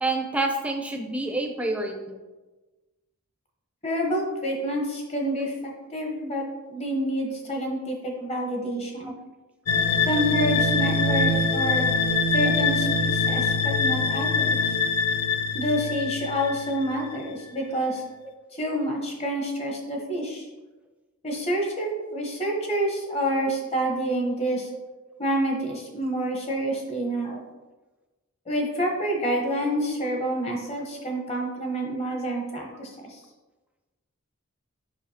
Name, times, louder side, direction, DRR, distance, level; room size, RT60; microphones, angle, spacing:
voice 1, 0.0-2.2, right 2 dB, 5° right, 3 dB, 0.5 m, -28 dB
voice 2, 3.8-9.1 10.1-11.9 12.3-14.6 15.5-18.0 18.5-20.5 21.2-24.7 25.2-27.4 28.5-33.2, equal, 30° left, 0 dB, 1.1 m, -28 dB
sound 1, 9.7-17.2, left 3 dB, 85° left, 0.6 m, -24 dB
7.3 x 5.5 x 2.9 m, 1.2 s
head